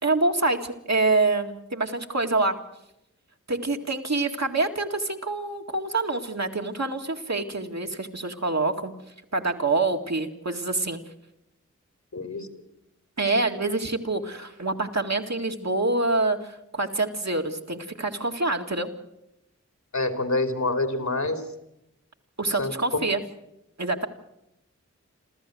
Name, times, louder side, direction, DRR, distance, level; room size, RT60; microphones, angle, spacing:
voice 1, 0.0-2.6 3.5-8.9 9.3-11.0 13.2-18.9 22.4-23.2 23.8-24.1, right 3 dB, 65° right, 3 dB, 2.1 m, -26 dB
voice 2, 12.1-12.5 19.9-21.5 22.6-23.0, left 2 dB, 70° left, 7 dB, 2.8 m, -27 dB
27.5 x 14.0 x 7.8 m, 0.86 s
wide cardioid pair, 50°, 29 cm